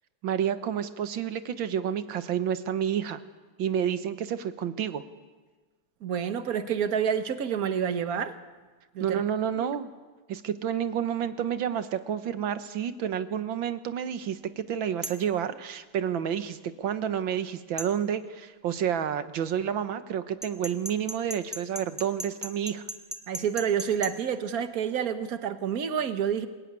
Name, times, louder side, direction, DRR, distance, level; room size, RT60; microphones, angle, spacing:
voice 1, 0.2-3.2 3.6-5.0 9.0-9.9 10.3-22.8, right 9 dB, 90° right, 11 dB, 1.9 m, -30 dB
voice 2, 6.0-8.4 8.9-9.2 23.3-26.5, right 8 dB, 50° right, 9 dB, 1.6 m, -28 dB
sound 1, 15.0-15.3 17.8-17.9 20.4-24.1, right 1 dB, 5° right, 1.2 m, -36 dB
26.5 x 16.5 x 9.5 m, 1.3 s
omnidirectional pair, 2.1 m